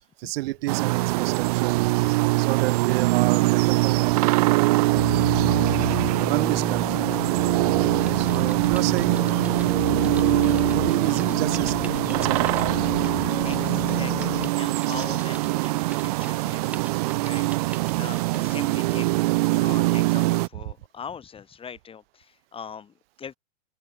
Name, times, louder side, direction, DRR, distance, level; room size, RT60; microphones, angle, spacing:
voice 1, 0.2-1.8 2.4-5.1 6.2-7.1 8.1-9.3 10.7-13.0 20.5-20.7, right 19 dB, 50° right, 3.7 m, -31 dB
sound 1, 0.7-20.5, right 22 dB, 30° right, 0.4 m, -23 dB
sound 2, 4.9-14.5, left 12 dB, 75° left, 1.4 m, -32 dB
Typing, 8.0-18.7 19.3-19.5, right 2 dB, 5° right, 3.4 m, -46 dB
voice 2, 13.0-19.2 19.5-23.3, left 7 dB, 15° left, 1.7 m, -41 dB
open air
hypercardioid pair, 140°, 38 cm